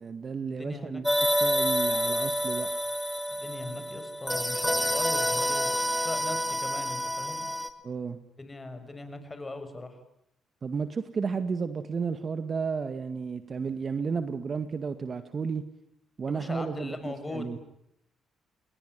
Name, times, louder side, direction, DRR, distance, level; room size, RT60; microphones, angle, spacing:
voice 1, 0.0-2.7 7.8-8.2 10.6-15.6 16.2-17.6, right 5 dB, 40° right, 10 dB, 2.0 m, -32 dB
voice 2, 0.5-1.0 3.3-7.5 8.4-10.0 16.3-17.6, left 2 dB, 20° left, 9 dB, 6.3 m, -40 dB
sound 1, 1.0-7.7, equal, 5° left, 2.6 m, -28 dB
30.0 x 21.5 x 9.4 m, 0.77 s
cardioid pair, 90°, 0 cm